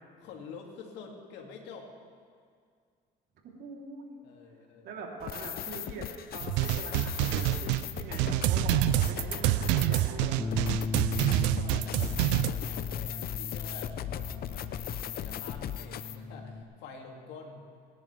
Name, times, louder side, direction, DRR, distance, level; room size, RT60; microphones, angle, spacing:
voice 1, 0.2-1.9 4.2-4.9 11.3-17.7, left 4 dB, 80° left, 1 dB, 2.5 m, -47 dB
voice 2, 3.4-4.2 4.8-10.4, right 4 dB, 70° right, -2 dB, 3.3 m, -43 dB
sound 1, 5.2-16.2, left 10 dB, 55° left, 0.7 m, -38 dB
sound 2, 6.4-12.5, right 15 dB, 85° right, 0.5 m, -27 dB
Bass guitar, 10.4-16.6, left 4 dB, 15° left, 1.2 m, -38 dB
27.0 x 11.0 x 3.4 m, 2.1 s
supercardioid pair, 85°, 18 cm